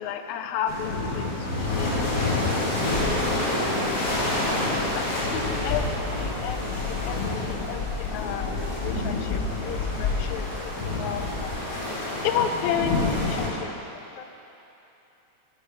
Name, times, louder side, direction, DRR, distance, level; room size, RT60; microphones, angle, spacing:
voice 1, 0.0-2.7 3.5-4.5 4.9-11.5 12.2-13.7 14.2-14.3, left 8 dB, 80° left, 7 dB, 1.9 m, -33 dB
sound 1, 0.7-13.5, left 2 dB, 40° left, 1.3 m, -27 dB
9.4 x 6.6 x 5.1 m, 2.9 s
omnidirectional pair, 3.4 m